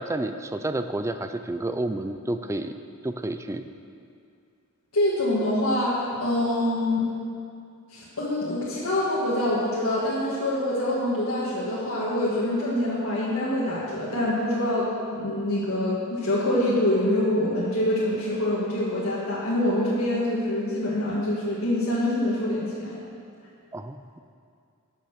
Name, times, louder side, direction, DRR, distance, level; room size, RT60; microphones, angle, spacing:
voice 1, 0.0-2.7 3.0-3.7 23.7-24.2, right 1 dB, 15° right, 9 dB, 0.4 m, -30 dB
voice 2, 4.9-7.0 7.9-23.0, left 1 dB, 90° left, -8 dB, 1.8 m, -25 dB
11.0 x 6.7 x 6.5 m, 2.4 s
head